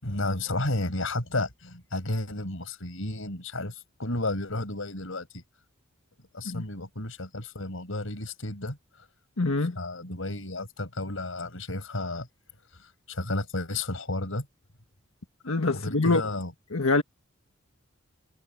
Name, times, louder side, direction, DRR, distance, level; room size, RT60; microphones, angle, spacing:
voice 1, 0.0-5.4 6.3-8.8 9.8-12.3 13.1-14.5 15.7-16.5, left 2 dB, 70° left, 6.0 m, -32 dB
voice 2, 9.4-9.8 15.4-16.2 16.7-17.0, left 3 dB, 90° left, 1.5 m, -24 dB
head